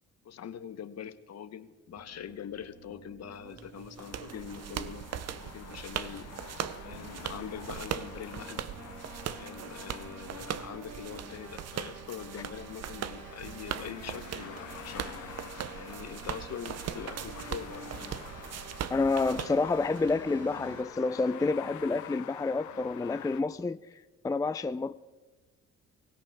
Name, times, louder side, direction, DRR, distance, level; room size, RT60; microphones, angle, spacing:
voice 1, 0.2-5.0 5.4-6.3 6.8-8.6 9.3-15.0 15.7-17.8, left 8 dB, 60° left, 1.1 m, -43 dB
sound 1, 1.9-20.8, right 4 dB, 75° right, 3.7 m, -48 dB
sound 2, 3.6-20.1, right 9 dB, 55° right, 0.7 m, -40 dB
sound 3, 4.0-23.4, left 12 dB, 75° left, 0.9 m, -49 dB
voice 2, 18.9-23.8 24.2-24.9, left 3 dB, 10° left, 0.4 m, -29 dB
24.0 x 16.5 x 3.6 m
cardioid pair, 90°, 30 cm